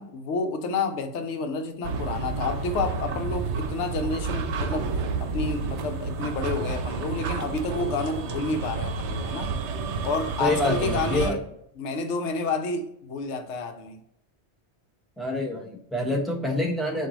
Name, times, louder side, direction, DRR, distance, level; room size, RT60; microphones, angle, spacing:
voice 1, 0.0-4.9 5.2-9.5 10.0-11.4 11.8-14.0, left 4 dB, 80° left, 6 dB, 1.0 m, -30 dB
sound 1, 1.8-11.3, right 4 dB, 80° right, 0.9 m, -30 dB
voice 2, 10.4-11.4 15.2-17.1, left 1 dB, ahead, -2 dB, 0.7 m, -27 dB
4.6 x 2.7 x 3.8 m, 0.75 s
omnidirectional pair, 1.2 m